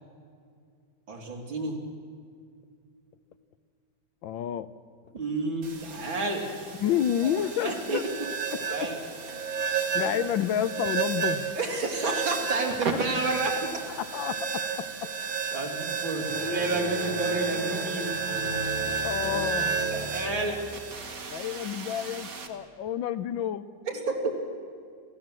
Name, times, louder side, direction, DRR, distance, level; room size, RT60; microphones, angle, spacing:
voice 1, 1.1-1.8 5.1-6.4 7.2-7.3 7.6-8.0 8.5-9.0 9.3-9.4 10.0-10.1 11.5-13.7 15.5-18.1 19.9-20.6 23.9-24.6, right 2 dB, 75° right, 0 dB, 3.8 m, -30 dB
voice 2, 4.2-4.7 6.8-8.0 8.5-9.0 9.9-11.5 13.0-13.2 13.9-15.1 19.0-19.8 21.3-23.7, left 10 dB, 75° left, 13 dB, 1.5 m, -30 dB
sound 1, 5.6-22.5, right 6 dB, 45° right, 1.9 m, -32 dB
sound 2, 16.1-20.8, left 2 dB, 25° left, 3.3 m, -37 dB
27.5 x 15.0 x 7.6 m, 2.2 s
omnidirectional pair, 2.2 m